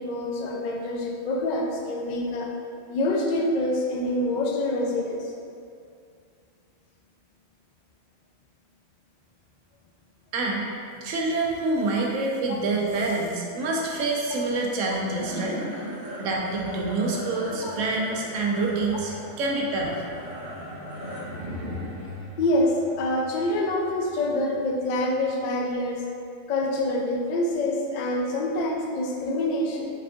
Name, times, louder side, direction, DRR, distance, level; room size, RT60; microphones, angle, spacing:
voice 1, 0.0-2.5 2.9-5.3 12.5-12.6 17.6-17.7 22.4-26.1 26.5-29.9, left 1 dB, 80° left, 1 dB, 0.4 m, -26 dB
voice 2, 10.3-10.7 11.0-15.6 16.2-19.9, right 3 dB, 85° right, -1 dB, 1.0 m, -27 dB
sound 1, 14.7-25.2, equal, 50° right, 1.0 m, -38 dB
4.3 x 3.4 x 2.5 m, 2.4 s
omnidirectional pair, 1.3 m